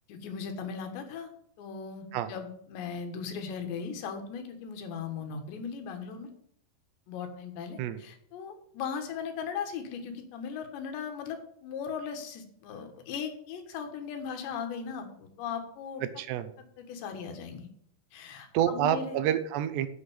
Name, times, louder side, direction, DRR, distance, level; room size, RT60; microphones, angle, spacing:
voice 1, 0.1-1.3 1.6-6.3 7.1-16.0 16.8-17.7 18.1-19.2, left 6 dB, 85° left, 5 dB, 3.9 m, -38 dB
voice 2, 16.0-16.5 18.5-19.9, right 11 dB, 80° right, 12 dB, 3.0 m, -28 dB
8.2 x 7.8 x 8.5 m, 0.68 s
omnidirectional pair, 4.9 m